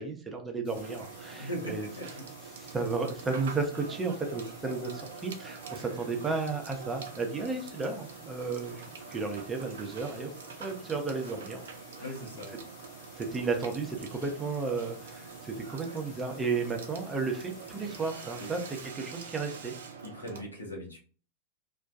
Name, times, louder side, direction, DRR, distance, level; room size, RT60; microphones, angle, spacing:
voice 1, 0.0-1.9 2.5-8.8 9.1-10.3 10.6-11.6 12.0-12.1 13.2-19.7, right 4 dB, 15° right, 3 dB, 0.6 m, -33 dB
sound 1, 0.6-18.9, left 3 dB, 45° left, 0.8 m, -54 dB
Water / Water tap faucet / Sink (filling or washing), 0.8-20.4, right 5 dB, 65° right, 0.4 m, -45 dB
voice 2, 1.4-2.1 12.0-12.6 18.4-18.5 20.0-21.0, equal, 85° left, -1 dB, 0.8 m, -39 dB
2.4 x 2.2 x 2.5 m, 0.39 s
figure-of-eight pair, 90°, 0 cm